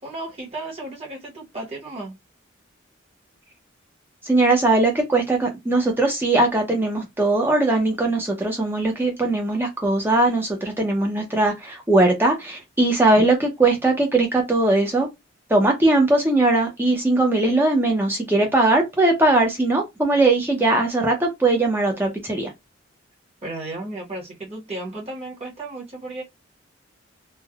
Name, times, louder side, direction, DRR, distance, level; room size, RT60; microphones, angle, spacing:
voice 1, 0.0-2.2 23.4-26.2, right 2 dB, 30° right, 1.0 m, -34 dB
voice 2, 4.2-15.1 15.5-22.5, right 2 dB, 10° right, 0.5 m, -20 dB
3.2 x 2.1 x 2.3 m
head